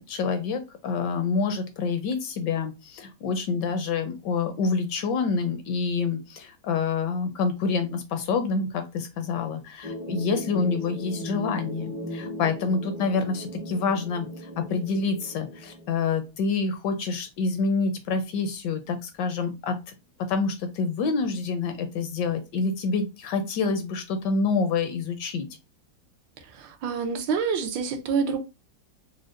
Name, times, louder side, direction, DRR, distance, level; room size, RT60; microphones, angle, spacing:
voice 1, 0.0-19.8 20.3-25.5, left 4 dB, 75° left, 1.1 m, -27 dB
sound 1, 9.8-16.1, equal, 35° right, 0.6 m, -37 dB
voice 2, 26.5-28.4, right 5 dB, 80° right, 1.4 m, -27 dB
5.0 x 2.1 x 2.4 m
omnidirectional pair, 2.1 m